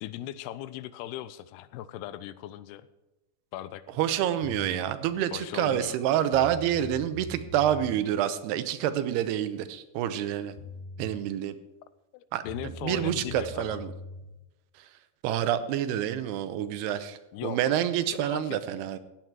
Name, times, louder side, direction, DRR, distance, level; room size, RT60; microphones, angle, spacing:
voice 1, 0.0-2.9 3.5-3.8 5.3-6.0 12.1-13.8 17.3-17.6 18.2-18.6, left 13 dB, 90° left, 15 dB, 2.6 m, -38 dB
voice 2, 4.0-10.5 11.0-11.6 12.3-13.9 14.8-14.9 15.2-19.0, right 10 dB, 85° right, 12 dB, 2.8 m, -28 dB
sound 1, 4.4-4.9 6.0-6.1 6.3-8.0 10.2-10.3 10.6-11.2 12.5-14.2, equal, 40° left, 3.4 m, -42 dB
15.5 x 9.4 x 4.7 m, 1.0 s
omnidirectional pair, 4.6 m